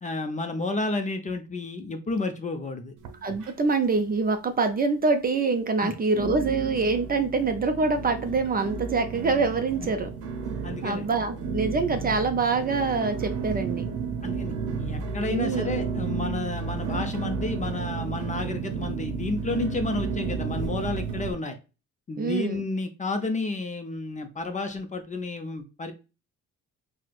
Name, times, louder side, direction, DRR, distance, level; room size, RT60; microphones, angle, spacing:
voice 1, 0.0-3.0 5.8-5.9 10.6-11.1 14.2-21.6 22.1-25.9, left 3 dB, 25° left, 6 dB, 0.5 m, -31 dB
sound 1, 3.0-3.9 4.2-4.8 5.3-5.4 6.1-21.3, right 5 dB, 80° right, 0.7 m, -32 dB
voice 2, 3.2-10.1 10.8-13.9 15.3-15.7 22.2-22.6, right 4 dB, 30° right, 7 dB, 0.4 m, -25 dB
4.3 x 2.1 x 2.4 m, 0.31 s
cardioid pair, 90°, 30 cm